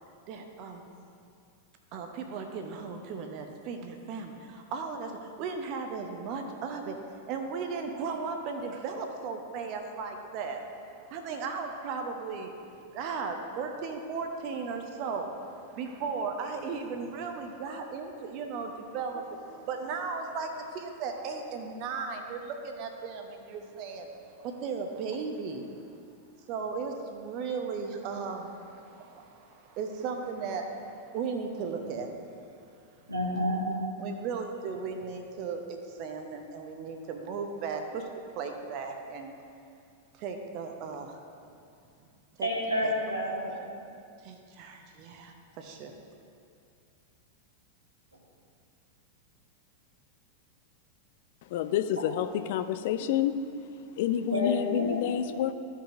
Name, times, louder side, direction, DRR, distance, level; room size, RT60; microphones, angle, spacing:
voice 1, 0.3-0.8 1.9-10.6 11.1-12.5 12.9-24.1 24.4-25.7 26.5-32.1 34.0-38.1 38.4-39.3 40.2-41.2 42.4-42.5 42.8-42.9 44.2-45.9, right 5 dB, 40° right, 0.7 m, -36 dB
voice 2, 33.1-33.7 42.4-43.5 54.3-55.0, left 1 dB, 85° right, 1.6 m, -29 dB
voice 3, 51.5-53.4 54.0-55.5, left 10 dB, 50° left, 0.4 m, -28 dB
13.5 x 5.4 x 2.6 m
figure-of-eight pair, 90°, 0 cm